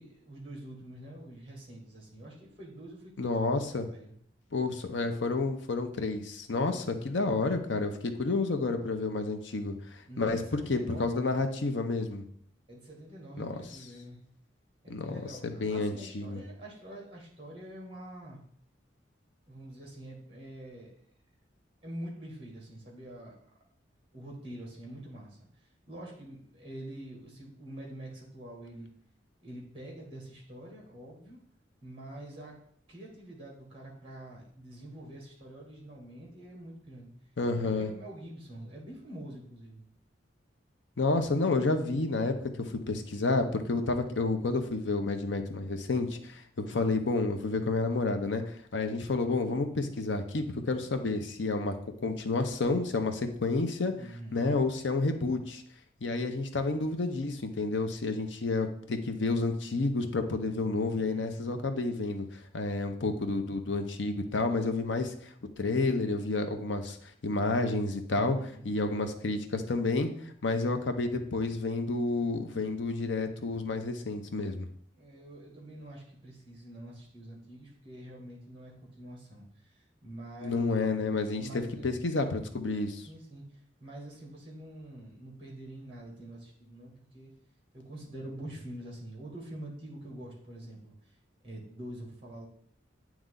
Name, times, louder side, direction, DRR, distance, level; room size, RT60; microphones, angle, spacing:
voice 1, 0.0-3.5 3.9-4.1 6.7-7.2 10.1-11.4 12.7-14.2 14.8-18.4 19.5-20.9 21.8-23.3 24.1-28.9 29.4-31.4 31.8-32.6 32.9-37.1 37.6-39.8 43.8-44.0 53.9-54.6 61.0-61.6 68.1-68.7 74.9-80.9 81.4-81.9 83.1-87.3 87.7-91.1 91.4-92.5, right 1 dB, 30° right, -2 dB, 2.0 m, -46 dB
voice 2, 3.2-3.9 4.5-12.2 13.4-13.6 14.9-16.4 37.4-37.9 41.0-51.8 52.0-53.9 54.3-55.6 56.0-74.7 80.4-83.1, left 3 dB, 70° left, 7 dB, 0.7 m, -30 dB
8.9 x 3.1 x 3.7 m, 0.63 s
head